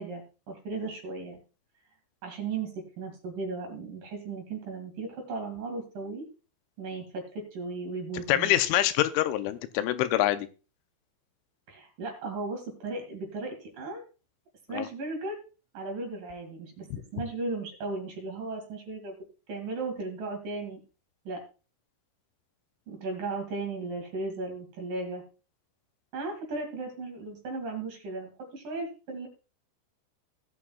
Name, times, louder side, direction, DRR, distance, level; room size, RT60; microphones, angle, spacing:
voice 1, 0.0-1.4 2.2-6.3 6.8-8.6 11.7-14.0 14.7-15.4 15.7-19.1 19.5-20.8 21.2-21.4 22.9-25.2 26.1-29.3, right 3 dB, 50° right, 3 dB, 3.4 m, -36 dB
voice 2, 8.3-10.5 14.7-14.9, left 13 dB, 85° left, 10 dB, 3.1 m, -25 dB
18.5 x 8.6 x 2.3 m, 0.33 s
omnidirectional pair, 5.6 m